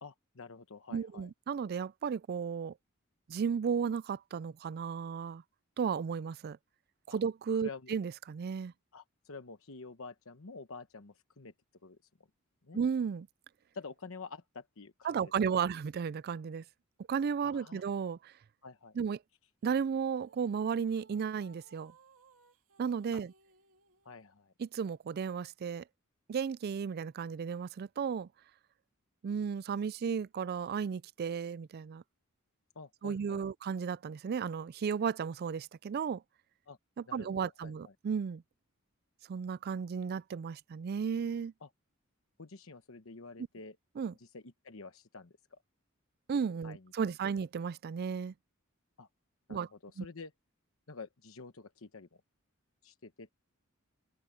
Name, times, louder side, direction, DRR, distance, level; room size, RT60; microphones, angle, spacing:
voice 1, 0.0-1.3 7.1-7.2 7.6-7.9 8.9-11.5 11.8-12.0 12.6-12.8 13.7-15.6 17.4-17.8 18.6-19.0 23.1-23.2 24.0-24.5 32.7-33.5 36.7-36.8 37.1-37.9 41.6-41.7 42.4-43.8 44.2-45.6 46.6-46.9 49.0-49.1 49.5-50.3 50.9-52.2 52.8-53.3, left 4 dB, 65° left, 1.1 m, -49 dB
voice 2, 0.9-2.7 3.3-5.4 5.8-6.6 7.1-8.7 12.7-13.3 15.0-16.6 17.1-18.3 19.0-19.2 19.6-21.9 22.8-23.3 24.6-25.8 26.3-28.3 29.2-32.0 33.0-36.2 37.0-38.4 39.3-41.5 44.0-44.1 46.3-48.3 49.5-49.7 50.0-50.1, right 6 dB, 45° right, 0.3 m, -34 dB
sound 1, 20.0-24.2, right 4 dB, 70° right, 2.9 m, -64 dB
open air
head